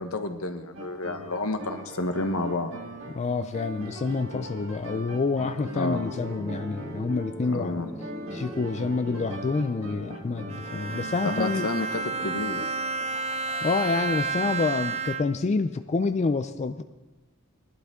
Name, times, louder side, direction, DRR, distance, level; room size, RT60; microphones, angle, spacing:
voice 1, 0.0-2.7 5.7-6.1 7.5-7.9 11.2-12.6, left 2 dB, 75° left, 7 dB, 1.1 m, -30 dB
sound 1, 0.7-14.4, right 1 dB, 70° right, 1.7 m, -41 dB
voice 2, 3.1-7.8 8.3-11.7 13.6-16.8, left 4 dB, 30° left, 9 dB, 0.4 m, -28 dB
sound 2, 6.1-12.4, right 1 dB, 5° right, 1.1 m, -42 dB
Bowed string instrument, 10.5-15.5, right 3 dB, 30° right, 0.6 m, -31 dB
20.5 x 11.5 x 3.6 m, 1.1 s
head